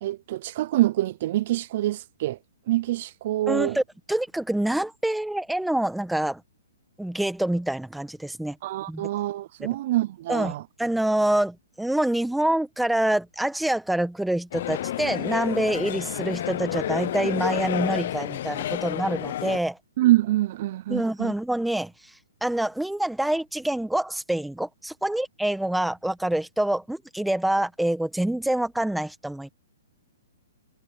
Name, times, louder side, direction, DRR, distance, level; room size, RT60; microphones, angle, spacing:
voice 1, 0.0-2.4 2.7-3.8 8.6-10.6 20.0-21.3, right 15 dB, 40° right, 0.4 m, -25 dB
voice 2, 3.5-6.4 7.0-8.6 8.9-9.1 9.6-9.7 10.3-10.5 10.8-19.8 20.9-21.9 22.4-29.5, right 1 dB, ahead, 1.2 m, -26 dB
sound 1, 14.5-19.6, left 12 dB, 50° left, 0.6 m, -30 dB
hypercardioid pair, 165°, 0 cm